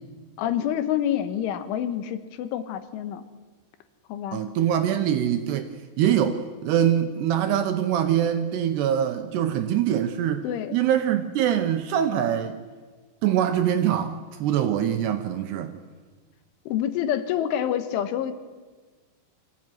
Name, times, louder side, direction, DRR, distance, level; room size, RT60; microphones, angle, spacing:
voice 1, 0.4-3.3 4.1-4.4 10.4-10.8 16.7-18.4, left 10 dB, 85° left, 10 dB, 3.6 m, -27 dB
voice 2, 4.3-5.7 6.0-10.5 10.7-12.6 13.2-15.7, right 10 dB, 75° right, 8 dB, 2.7 m, -23 dB
24.5 x 15.5 x 9.3 m, 1.4 s
omnidirectional pair, 5.6 m